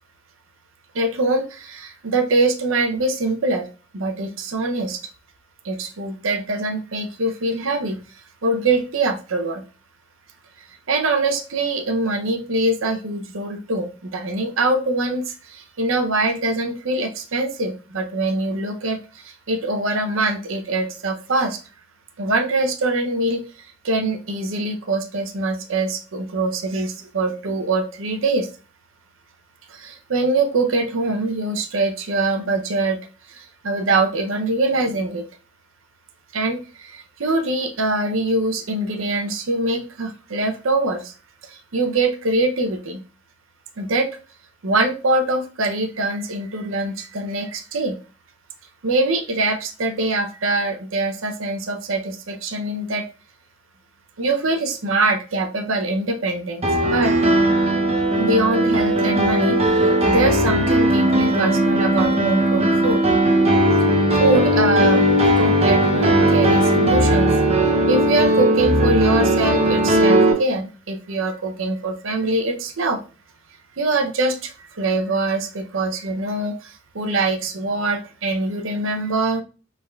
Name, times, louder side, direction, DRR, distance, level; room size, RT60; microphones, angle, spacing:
voice 1, 0.9-3.7 3.9-5.0 5.6-8.0 8.4-9.6 10.9-21.6 22.2-23.4 23.8-28.5 29.7-33.0 33.3-35.3 36.3-41.1 41.4-43.0 43.8-44.1 44.6-48.0 48.8-53.1 54.2-57.1 58.2-63.0 64.2-67.3 67.9-73.0 73.8-79.4, right 2 dB, 70° right, 6 dB, 0.6 m, -23 dB
Piano, 56.6-70.3, right 1 dB, 30° right, 0.7 m, -17 dB
5.4 x 3.4 x 2.3 m, 0.35 s
head